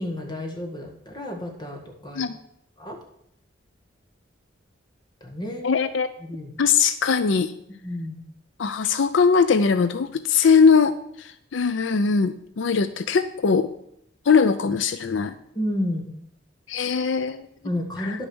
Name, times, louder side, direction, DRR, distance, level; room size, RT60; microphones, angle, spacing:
voice 1, 0.0-2.2 2.8-3.0 5.2-5.7 6.2-6.6 7.8-8.2 15.6-16.1 17.6-18.3, left 1 dB, 25° left, 3 dB, 1.6 m, -31 dB
voice 2, 5.6-6.1 6.6-7.5 8.6-13.7 14.3-15.4 16.7-17.5 18.0-18.1, left 5 dB, 80° left, 13 dB, 0.5 m, -21 dB
9.8 x 6.3 x 6.2 m, 0.74 s
head